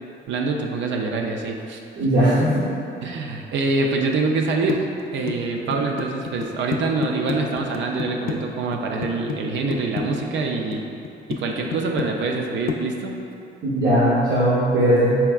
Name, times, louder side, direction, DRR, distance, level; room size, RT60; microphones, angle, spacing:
voice 1, 0.3-1.8 3.0-4.9 5.1-10.8 11.3-13.2, right 3 dB, 70° right, 1 dB, 0.4 m, -25 dB
voice 2, 2.0-2.7 13.6-15.2, equal, 50° right, -10 dB, 0.9 m, -18 dB
sound 1, 4.7-8.4 8.7-9.4 9.7-10.8 11.0-11.4 11.7-12.4 12.7-12.8, left 7 dB, 50° left, 0.4 m, -28 dB
4.7 x 3.3 x 2.3 m, 2.7 s
cardioid pair, 90°, 20 cm